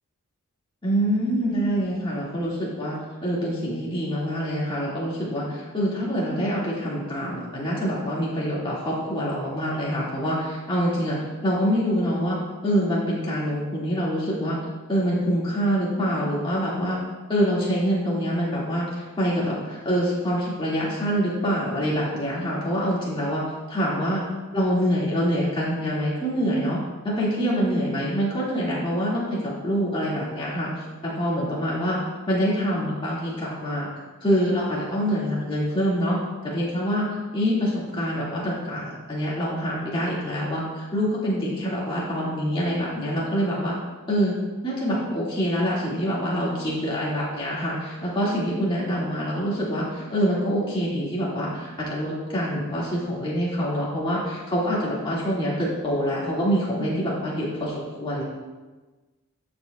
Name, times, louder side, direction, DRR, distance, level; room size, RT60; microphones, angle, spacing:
voice 1, 0.8-3.0 3.2-11.2 11.4-12.4 12.6-14.6 14.9-17.0 17.3-23.4 23.7-24.2 24.5-26.8 27.0-30.7 31.0-32.0 32.3-33.9 34.2-36.2 36.4-37.1 37.3-43.7 44.1-44.3 44.6-58.2, equal, 25° left, -6 dB, 1.9 m, -25 dB
13.5 x 5.1 x 2.3 m, 1.2 s
head